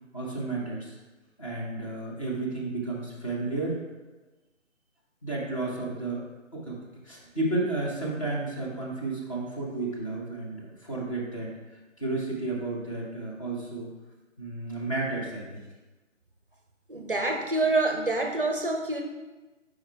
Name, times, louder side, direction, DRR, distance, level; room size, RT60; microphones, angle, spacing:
voice 1, 0.1-1.0 1.4-3.8 5.2-6.8 7.0-13.9 14.4-15.6, right 2 dB, 25° left, -4 dB, 1.0 m, -32 dB
voice 2, 16.9-19.0, right 2 dB, 45° right, 3 dB, 0.5 m, -26 dB
8.9 x 4.9 x 2.3 m, 1.1 s
figure-of-eight pair, 150°, 39 cm